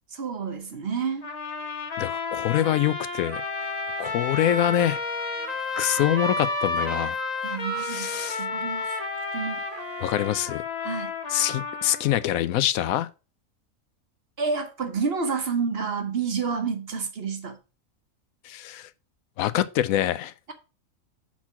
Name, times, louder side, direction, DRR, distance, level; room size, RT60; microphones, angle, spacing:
voice 1, 0.1-1.3 7.4-8.1 8.4-8.9 9.3-9.6 10.8-11.1 14.4-17.6, right 5 dB, 50° right, 1.2 m, -29 dB
sound 1, 1.2-12.2, left 5 dB, 35° left, 0.9 m, -32 dB
voice 2, 2.0-3.4 4.0-5.0 5.8-7.2 7.8-8.4 10.0-10.6 11.3-13.1 18.4-18.9 19.4-20.3, left 12 dB, 85° left, 1.0 m, -25 dB
Wind instrument woodwind instrument, 3.2-10.3, right 11 dB, 70° right, 0.9 m, -39 dB
5.9 x 4.4 x 5.7 m
omnidirectional pair, 1.4 m